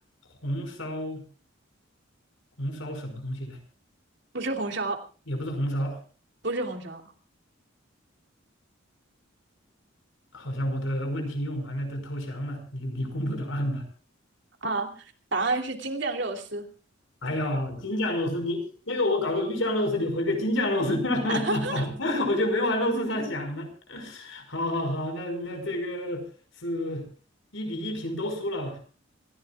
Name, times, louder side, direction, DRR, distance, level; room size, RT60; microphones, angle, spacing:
voice 1, 0.4-1.2 2.6-3.6 5.3-6.0 10.3-13.8 17.2-26.2 26.6-27.1 27.5-28.8, left 1 dB, 75° left, 6 dB, 5.5 m, -29 dB
voice 2, 4.3-5.0 6.4-7.0 14.6-14.9 15.3-16.7 21.4-21.9, right 3 dB, 60° right, 4 dB, 3.0 m, -29 dB
27.0 x 16.0 x 2.4 m, 0.36 s
head